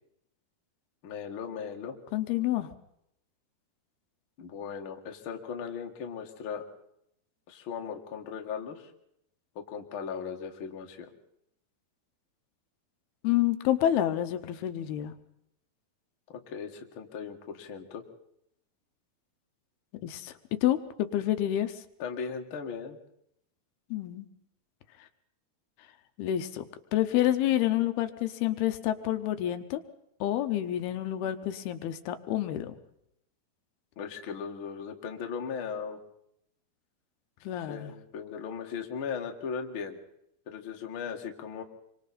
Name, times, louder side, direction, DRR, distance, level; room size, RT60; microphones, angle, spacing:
voice 1, 1.0-2.0 4.4-6.6 7.5-8.9 9.6-11.1 16.3-18.0 22.0-23.0 34.0-36.0 37.6-40.0 40.5-41.6, left 6 dB, 45° left, 3 dB, 1.9 m, -37 dB
voice 2, 2.1-2.7 13.2-15.1 20.0-21.7 23.9-24.3 26.2-26.6 26.9-29.8 30.2-32.7 37.4-37.9, left 12 dB, 80° left, 8 dB, 2.9 m, -28 dB
27.5 x 24.0 x 4.2 m, 0.76 s
omnidirectional pair, 4.5 m